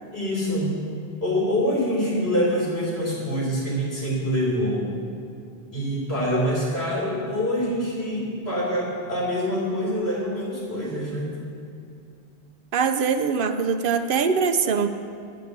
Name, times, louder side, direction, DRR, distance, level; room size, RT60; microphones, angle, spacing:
voice 1, 0.1-0.8 1.2-4.9 5.7-11.3, equal, 85° left, -5 dB, 3.2 m, -25 dB
voice 2, 12.7-14.9, right 6 dB, 65° right, 8 dB, 0.7 m, -22 dB
9.8 x 5.1 x 8.0 m, 2.5 s
omnidirectional pair, 1.0 m